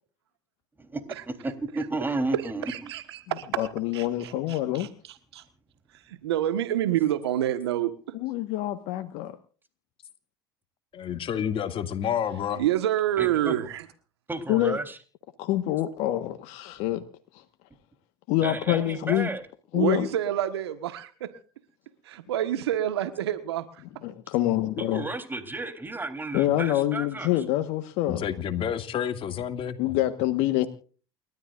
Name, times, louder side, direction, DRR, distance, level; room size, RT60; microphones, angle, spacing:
voice 1, 0.8-2.9 13.2-13.7 14.3-15.0 18.4-19.5 24.8-27.4, right 2 dB, 15° right, 7 dB, 3.7 m, -33 dB
voice 2, 2.7-3.6 3.9-4.9 5.3-5.4 6.1-7.9 12.6-13.8 19.7-21.3 22.0-23.7, right 12 dB, 85° right, 10 dB, 1.5 m, -27 dB
voice 3, 3.6-4.9 8.1-9.4 14.5-14.8 15.4-17.0 17.3-17.4 18.3-19.3 19.7-20.1 24.0-25.0 26.3-28.2 29.8-30.7, left 14 dB, 65° left, 8 dB, 1.5 m, -26 dB
voice 4, 10.9-12.6 28.1-29.8, left 9 dB, 45° left, 7 dB, 2.4 m, -29 dB
29.5 x 13.5 x 2.6 m, 0.39 s
hypercardioid pair, 80°, 13 cm